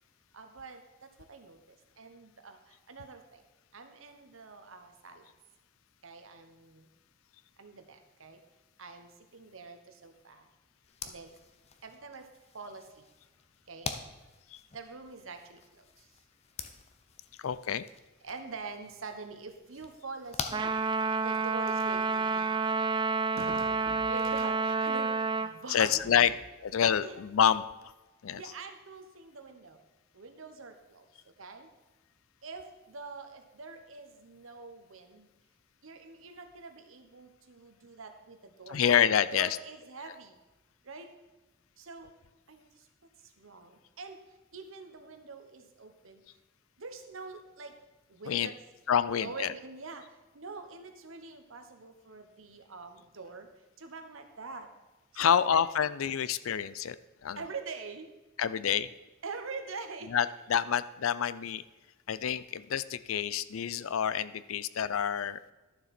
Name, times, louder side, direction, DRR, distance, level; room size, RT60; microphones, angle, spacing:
voice 1, 0.3-0.8 1.3-1.6 2.0-2.6 2.9-3.2 3.7-5.2 6.0-6.8 7.6-8.4 8.8-10.4 11.0-11.3 11.8-12.3 12.5-12.8 13.7-13.9 14.7-15.6 18.2-20.7 21.2-22.5 23.4-26.4 27.0-27.2 28.3-29.8 30.1-31.0 31.4-31.7 32.4-35.3 35.8-38.8 39.3-40.3 40.9-41.1 41.8-42.1 42.5-42.7 43.4-44.2 44.5-46.2 46.8-47.7 48.2-48.5 49.2-50.0 50.3-53.5 53.8-54.7 55.2-55.6 57.4-58.1 59.2-60.1, right 4 dB, 75° right, 7 dB, 1.1 m, -44 dB
sound 1, 10.8-21.5, left 5 dB, 30° left, 0.6 m, -45 dB
voice 2, 17.4-17.9 25.7-26.3 26.6-27.6 28.2-28.4 38.7-39.6 48.3-48.5 48.9-49.5 55.2-57.0 57.2-57.4 58.4-58.9 60.1-61.6 62.1-65.4, left 8 dB, 75° left, 16 dB, 0.4 m, -27 dB
Trumpet, 20.5-25.5, right 4 dB, 20° right, 0.4 m, -29 dB
12.0 x 7.0 x 4.3 m, 1.1 s
head